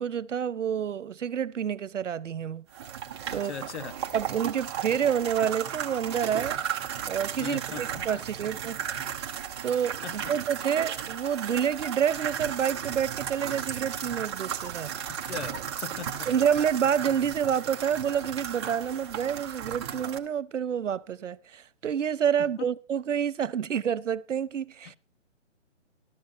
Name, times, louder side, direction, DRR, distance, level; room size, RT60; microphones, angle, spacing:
voice 1, 0.0-2.6 3.3-3.5 4.1-6.6 7.1-8.8 9.6-14.9 16.3-25.0, right 8 dB, 85° right, 0.9 m, -28 dB
sound 1, 2.7-20.2, right 8 dB, 25° right, 1.0 m, -35 dB
voice 2, 3.3-3.9 7.4-8.1 8.4-8.5 10.0-10.4 15.1-16.3 22.6-22.7 24.8-24.9, left 6 dB, 70° left, 1.6 m, -39 dB
14.5 x 13.0 x 4.2 m
hypercardioid pair, 170°, 36 cm